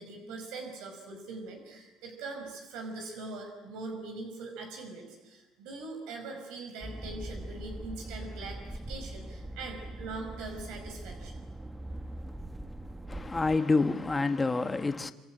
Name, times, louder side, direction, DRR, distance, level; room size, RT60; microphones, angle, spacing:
voice 1, 0.0-11.3, right 3 dB, 85° right, 5.1 m, -42 dB
sound 1, 6.8-13.6, right 1 dB, 10° right, 1.1 m, -42 dB
voice 2, 13.1-15.1, left 3 dB, 15° left, 1.4 m, -27 dB
26.0 x 25.5 x 9.0 m
cardioid pair, 130°, 0 cm